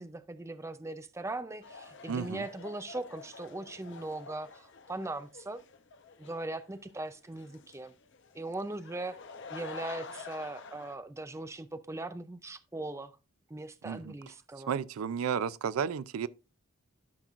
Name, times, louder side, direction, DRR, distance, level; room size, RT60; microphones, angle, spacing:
voice 1, 0.0-5.6 6.2-7.9 8.3-9.2 9.5-13.1 13.5-14.8, right 2 dB, 15° right, 0.4 m, -39 dB
sound 1, 1.6-11.0, left 5 dB, 60° left, 0.8 m, -49 dB
voice 2, 2.1-2.4 13.8-14.1 14.7-16.3, right 7 dB, 80° right, 0.4 m, -32 dB
12.5 x 5.9 x 2.4 m
head